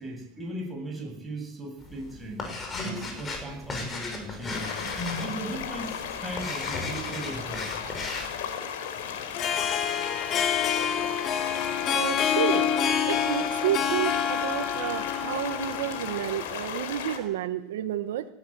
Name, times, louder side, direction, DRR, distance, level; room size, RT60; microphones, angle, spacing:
voice 1, 0.0-2.4 2.8-4.7 5.2-7.7, right 1 dB, 10° right, 0 dB, 7.7 m, -37 dB
sound 1, 1.8-8.4, left 2 dB, 25° left, 6.3 m, -36 dB
sound 2, 4.5-17.2, left 8 dB, 85° left, 4.3 m, -36 dB
Harp, 9.2-16.5, left 8 dB, 40° left, 2.5 m, -27 dB
voice 2, 11.9-12.7 13.1-18.3, right 11 dB, 90° right, 8 dB, 1.4 m, -30 dB
19.0 x 16.0 x 8.9 m, 0.86 s
supercardioid pair, 115°, 0 cm